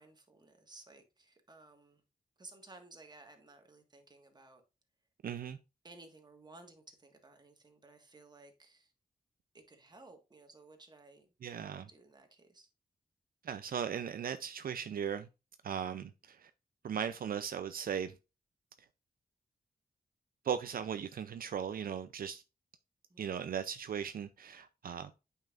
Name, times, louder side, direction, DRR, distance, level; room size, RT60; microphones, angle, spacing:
voice 1, 0.0-2.0 2.4-4.6 5.8-8.9 9.5-11.3 11.7-12.7 23.1-23.3, right 2 dB, 30° right, 1.6 m, -57 dB
voice 2, 5.2-5.6 11.4-11.9 13.4-15.3 15.6-16.5 16.8-18.1 20.4-22.4 23.2-25.1, right 8 dB, 70° right, 0.5 m, -37 dB
8.9 x 5.6 x 2.5 m
wide cardioid pair, 110°, 15 cm